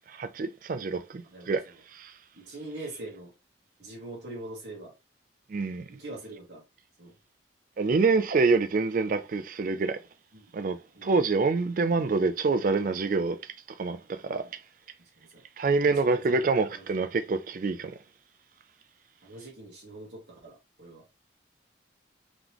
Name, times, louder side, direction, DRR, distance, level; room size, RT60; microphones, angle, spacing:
voice 1, 0.2-1.6 2.0-2.1 5.5-5.8 7.8-10.0 10.5-13.4 13.8-14.5 15.6-17.9, right 4 dB, 50° right, 0.4 m, -26 dB
voice 2, 1.2-1.8 2.3-3.3 3.8-4.9 5.9-6.6 7.0-7.1 10.3-10.5 10.9-11.1 14.2-14.5 15.2-15.4 15.8-17.0 19.2-21.0, right 2 dB, 65° right, 1.5 m, -43 dB
4.0 x 3.5 x 2.9 m
head